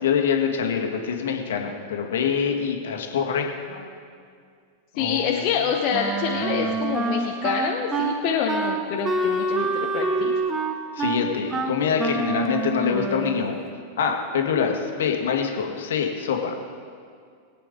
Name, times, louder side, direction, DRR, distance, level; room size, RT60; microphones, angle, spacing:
voice 1, 0.0-3.9 5.0-5.5 6.4-6.8 11.0-13.6 14.0-16.6, left 6 dB, 60° left, 2 dB, 1.7 m, -25 dB
voice 2, 5.0-10.3, left 7 dB, 40° left, 0 dB, 1.0 m, -26 dB
Wind instrument woodwind instrument, 5.9-13.5, right 3 dB, 20° right, 1.1 m, -26 dB
22.0 x 8.9 x 3.7 m, 2.2 s
figure-of-eight pair, 90°, 0 cm